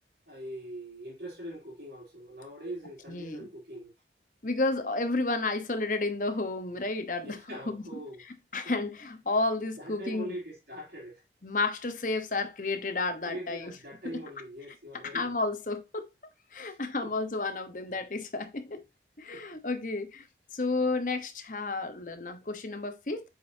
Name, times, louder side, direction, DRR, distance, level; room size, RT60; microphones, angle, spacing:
voice 1, 0.3-3.9 7.2-8.2 9.8-11.2 13.2-15.3 16.6-17.1 19.3-19.4, right 1 dB, 65° right, 2.9 m, -42 dB
voice 2, 3.1-3.5 4.4-7.8 8.5-10.4 11.4-13.7 14.0-14.2 15.0-16.1 16.5-18.8 19.2-20.3 20.5-23.2, left 3 dB, 45° left, 1.1 m, -31 dB
7.6 x 5.2 x 2.7 m
head